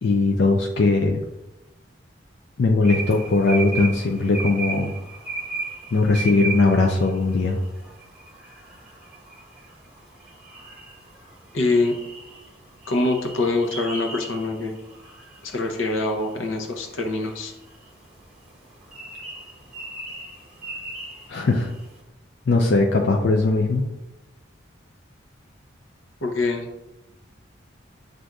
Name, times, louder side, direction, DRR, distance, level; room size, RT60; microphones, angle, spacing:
voice 1, 0.0-1.2 2.6-4.9 5.9-7.6 21.3-21.7 22.5-23.9, left 3 dB, 60° left, 1 dB, 0.4 m, -19 dB
sound 1, 2.8-21.9, right 3 dB, 5° right, 1.0 m, -37 dB
voice 2, 11.5-11.9 12.9-14.8 15.4-17.5 26.2-26.7, left 2 dB, 85° left, 3 dB, 0.7 m, -24 dB
7.5 x 2.6 x 2.3 m, 1.0 s
head